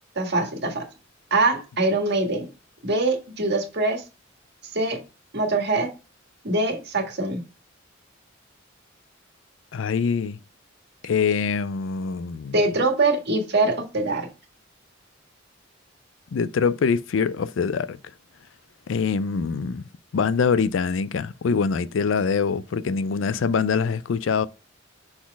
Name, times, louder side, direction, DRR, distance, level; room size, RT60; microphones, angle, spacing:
voice 1, 0.2-0.9 1.3-2.5 2.8-4.0 4.6-5.0 5.3-5.9 6.4-7.4 12.5-14.3, right 2 dB, 60° right, 1.7 m, -23 dB
voice 2, 9.7-10.4 11.0-12.6 16.3-18.0 18.9-19.8 20.1-24.5, left 5 dB, 75° left, 0.4 m, -24 dB
6.2 x 4.1 x 4.6 m
head